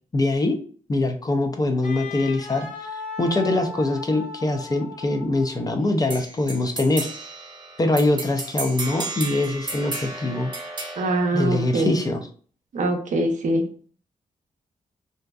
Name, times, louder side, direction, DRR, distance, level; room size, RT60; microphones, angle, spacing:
voice 1, 0.1-0.6 0.9-7.1 7.8-10.5 11.3-12.3, left 2 dB, 25° left, 5 dB, 0.4 m, -23 dB
Wind instrument woodwind instrument, 1.8-5.9, left 4 dB, 65° left, 0.7 m, -37 dB
sound 1, 6.1-12.1, right 2 dB, 35° right, 0.8 m, -34 dB
voice 2, 11.0-11.9 12.7-13.6, right 2 dB, 60° right, 3 dB, 0.6 m, -23 dB
2.6 x 2.1 x 2.3 m, 0.43 s
cardioid pair, 70°, 14 cm